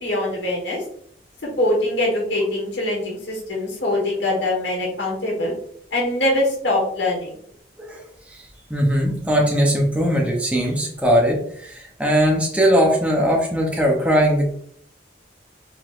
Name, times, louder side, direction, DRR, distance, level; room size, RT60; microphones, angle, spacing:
voice 1, 0.0-0.8 1.4-5.5 5.9-7.3, left 1 dB, 85° left, -3 dB, 1.6 m, -23 dB
voice 2, 8.7-14.5, equal, 5° right, -1 dB, 0.7 m, -19 dB
4.7 x 3.9 x 2.5 m, 0.64 s
head